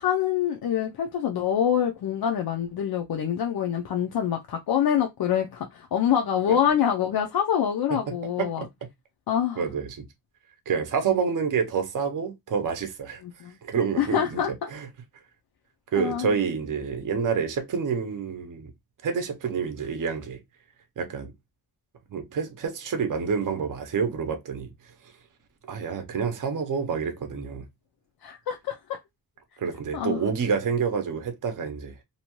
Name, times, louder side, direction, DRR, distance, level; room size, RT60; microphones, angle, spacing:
voice 1, 0.0-8.6 9.3-9.6 13.2-13.5 14.0-14.7 15.9-16.3 28.2-29.0 29.9-30.2, left 9 dB, 70° left, 0.5 m, -25 dB
voice 2, 9.6-10.0 10.7-13.2 13.6-14.4 14.7-14.9 15.9-18.7 19.0-20.4 21.0-21.3 22.1-24.7 25.7-27.6 29.6-32.0, right 6 dB, 55° right, 0.6 m, -28 dB
2.7 x 2.2 x 2.9 m
wide cardioid pair, 165°, 37 cm